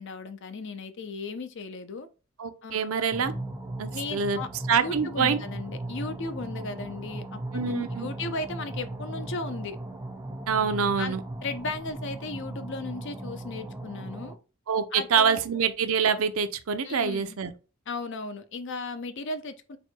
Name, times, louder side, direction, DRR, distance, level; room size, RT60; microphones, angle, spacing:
voice 1, 0.0-2.1 2.6-2.9 3.9-4.5 4.8-9.8 11.0-11.2 11.4-14.4 14.9-15.4 16.8-17.4 17.9-19.8, left 3 dB, 60° left, 0.6 m, -36 dB
voice 2, 2.4-3.3 3.8-4.4 4.7-5.4 7.5-8.1 10.5-11.2 14.7-17.5, right 6 dB, 80° right, 0.6 m, -25 dB
sound 1, 3.1-14.4, right 2 dB, 15° right, 0.4 m, -37 dB
4.2 x 2.2 x 4.4 m
head